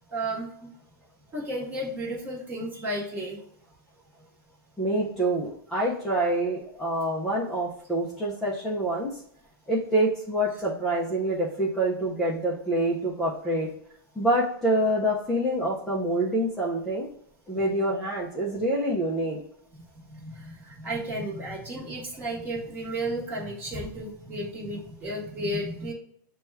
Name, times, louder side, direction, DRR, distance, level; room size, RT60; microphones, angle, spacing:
voice 1, 0.1-0.7 1.3-3.4 20.1-25.9, right 1 dB, 15° right, -2 dB, 1.0 m, -33 dB
voice 2, 4.8-9.2 9.7-13.7 14.2-17.1 17.5-19.4, right 1 dB, 5° left, -6 dB, 0.5 m, -26 dB
6.6 x 2.3 x 3.3 m, 0.67 s
supercardioid pair, 170°, 12 cm